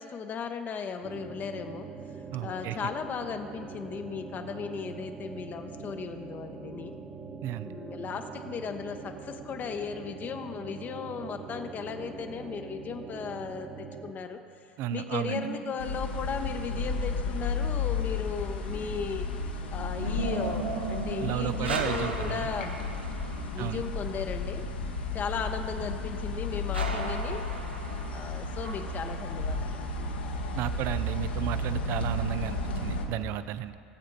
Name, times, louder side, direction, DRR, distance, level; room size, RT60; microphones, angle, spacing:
voice 1, 0.0-1.9 2.4-6.9 7.6-19.2 19.7-22.7 23.5-24.6 25.1-27.5 28.1-29.8, left 6 dB, 30° left, 6 dB, 0.8 m, -36 dB
sound 1, 1.0-14.1, right 5 dB, 30° right, 1.2 m, -43 dB
voice 2, 2.3-2.8 7.4-7.7 14.8-15.5 21.2-22.5 23.6-23.8 30.6-33.8, right 13 dB, 50° right, 13 dB, 0.5 m, -33 dB
sound 2, 15.2-16.5 19.0-23.9 26.7-29.1, right 2 dB, 85° right, 1.1 m, -36 dB
sound 3, 15.8-33.1, left 3 dB, 75° left, 1.4 m, -33 dB
19.0 x 8.5 x 4.0 m, 2.4 s
figure-of-eight pair, 80°, 6 cm